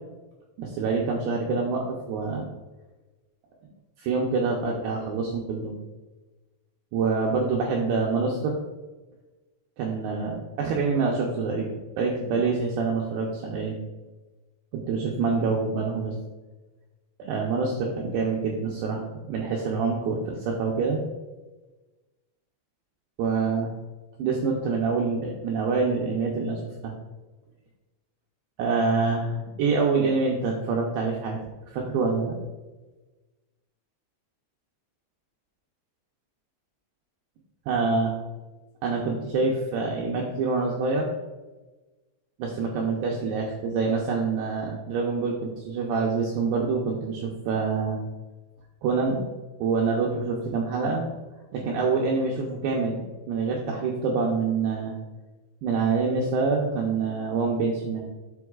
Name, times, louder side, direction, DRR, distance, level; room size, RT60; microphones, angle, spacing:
voice 1, 0.6-2.4 4.0-5.7 6.9-8.6 9.8-13.8 14.7-16.1 17.2-21.0 23.2-23.7 24.2-26.9 28.6-31.4 31.7-32.3 37.7-38.1 38.8-41.1 42.4-48.0 48.8-49.2 49.6-51.1 51.5-55.0 55.6-58.0, right 4 dB, 85° right, -1 dB, 2.4 m, -26 dB
9.4 x 6.2 x 2.4 m, 1.2 s
omnidirectional pair, 5.8 m